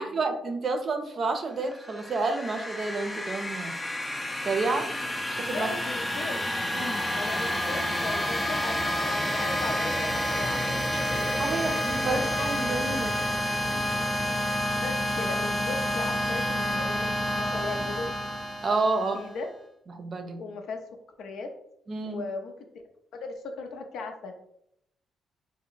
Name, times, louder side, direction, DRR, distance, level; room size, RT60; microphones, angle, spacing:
voice 1, 0.0-3.8 4.4-5.7 6.7-7.1 11.4-13.2 13.7-13.8 18.6-19.2 19.9-20.4 21.9-22.2, right 3 dB, 45° right, 6 dB, 0.5 m, -30 dB
sound 1, 1.7-19.3, equal, 15° left, 0.4 m, -29 dB
voice 2, 5.5-6.5 7.1-10.8 11.1-11.4 12.0-12.2 14.8-18.2 19.0-19.5 20.4-20.8 21.2-21.5 22.0-22.5 23.1-24.4, left 3 dB, 75° left, 5 dB, 0.5 m, -37 dB
3.4 x 2.1 x 3.8 m, 0.75 s
cardioid pair, 90°, 0 cm